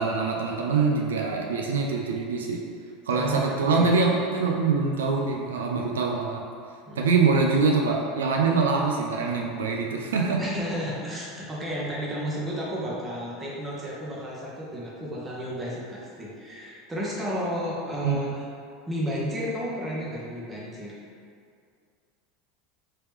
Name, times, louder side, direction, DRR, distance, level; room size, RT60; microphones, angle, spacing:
voice 1, 0.0-2.6 3.1-6.4 7.0-10.4 18.0-18.2, right 4 dB, 90° right, 0 dB, 0.3 m, -24 dB
voice 2, 3.1-3.9 6.9-7.2 10.4-18.5 18.9-21.0, equal, 20° right, -5 dB, 1.0 m, -32 dB
3.2 x 2.9 x 3.4 m, 2.3 s
hypercardioid pair, 95°, 0 cm